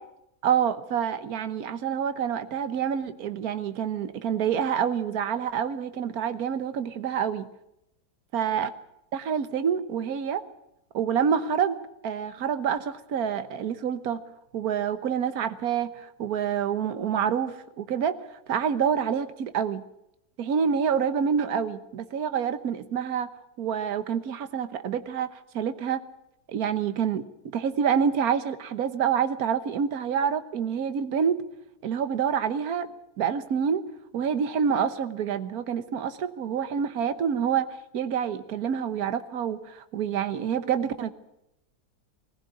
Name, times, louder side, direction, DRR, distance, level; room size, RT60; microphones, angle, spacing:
voice 1, 0.4-7.5 8.3-8.7 9.1-10.4 10.9-11.8 12.0-14.2 14.5-15.9 16.2-18.1 18.5-19.8 20.4-23.3 23.6-25.3 25.5-26.0 26.5-27.2 27.5-31.4 31.8-32.9 33.2-33.8 34.1-37.7 37.9-41.1, right 7 dB, 60° right, 12 dB, 1.5 m, -27 dB
21.0 x 15.5 x 8.3 m, 0.85 s
omnidirectional pair, 1.8 m